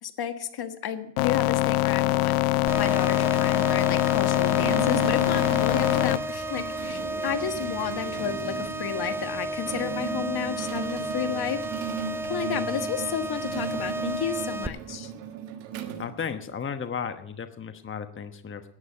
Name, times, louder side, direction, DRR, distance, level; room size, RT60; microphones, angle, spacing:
voice 1, 0.0-2.4 2.7-11.6 12.3-15.1, left 8 dB, 55° left, 9 dB, 1.4 m, -32 dB
sound 1, 1.2-6.2, left 19 dB, 90° left, 0.6 m, -23 dB
sound 2, 2.7-14.7, right 1 dB, 5° right, 0.7 m, -33 dB
sound 3, 4.6-16.9, right 7 dB, 75° right, 1.6 m, -36 dB
voice 2, 16.0-18.7, left 6 dB, 25° left, 8 dB, 1.1 m, -34 dB
11.5 x 9.3 x 8.6 m, 0.71 s
supercardioid pair, 75°, 46 cm